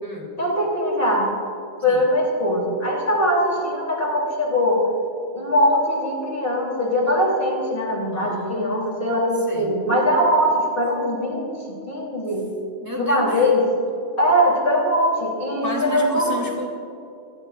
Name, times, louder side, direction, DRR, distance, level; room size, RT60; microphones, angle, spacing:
voice 1, 0.4-1.3 1.8-4.9 5.3-12.5 13.0-13.7 14.2-16.3, equal, 45° left, -2 dB, 3.5 m, -21 dB
voice 2, 8.1-8.8 9.5-9.7 12.8-13.5 15.6-16.7, equal, 15° right, -3 dB, 3.1 m, -30 dB
27.5 x 20.5 x 2.5 m, 2.7 s
omnidirectional pair, 1.3 m